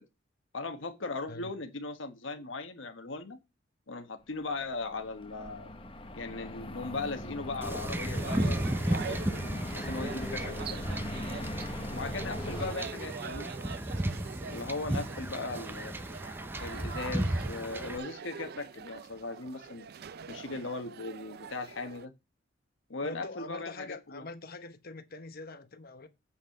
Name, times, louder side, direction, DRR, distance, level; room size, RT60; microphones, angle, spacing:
voice 1, 0.5-3.4 3.9-5.7 6.1-9.2 9.7-10.8 11.9-13.5 14.5-16.0 16.6-19.9 20.3-22.1 22.9-24.2, left 3 dB, 80° left, 1.2 m, -38 dB
sound 1, 4.5-12.7, left 1 dB, 30° left, 0.9 m, -40 dB
Wind / Ocean / Boat Water vehicle, 7.6-18.0, right 1 dB, 10° right, 0.6 m, -34 dB
sound 2, 8.1-22.1, right 6 dB, 55° right, 0.4 m, -44 dB
voice 2, 23.0-26.1, left 3 dB, 50° left, 1.1 m, -43 dB
8.3 x 5.6 x 5.8 m
head